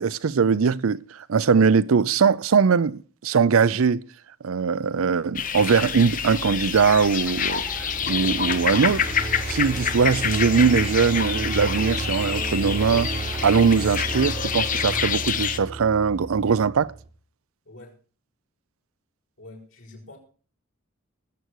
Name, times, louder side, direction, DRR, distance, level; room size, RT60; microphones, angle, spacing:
voice 1, 0.0-4.0 4.4-9.1 9.5-13.1 13.4-16.9, right 5 dB, 75° right, 0.5 m, -21 dB
sound 1, 5.4-15.6, left 7 dB, 40° left, 0.7 m, -27 dB
sound 2, 6.8-8.0 8.7-8.8 9.0-10.5 11.2-12.3 13.4-13.5 13.7-15.0, left 1 dB, 5° left, 0.9 m, -47 dB
sound 3, 7.1-17.1, right 3 dB, 30° right, 1.0 m, -33 dB
voice 2, 17.6-18.0 19.4-20.2, left 2 dB, 70° left, 5.6 m, -45 dB
20.0 x 7.9 x 4.7 m
head